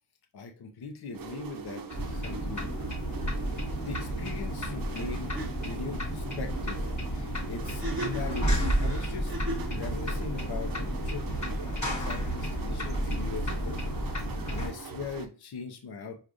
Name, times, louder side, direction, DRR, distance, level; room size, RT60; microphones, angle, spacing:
voice 1, 0.3-2.7 3.8-9.3 9.7-13.8 14.5-16.2, left 5 dB, 65° left, 4 dB, 0.7 m, -40 dB
sound 1, 1.1-15.3, right 5 dB, 55° right, 0.6 m, -42 dB
sound 2, 1.9-14.7, equal, 45° left, 1.2 m, -32 dB
sound 3, 5.0-5.1 5.3-5.5 7.7-9.8, equal, 30° right, 1.2 m, -37 dB
4.8 x 2.4 x 2.5 m, 0.35 s
wide cardioid pair, 75°, 41 cm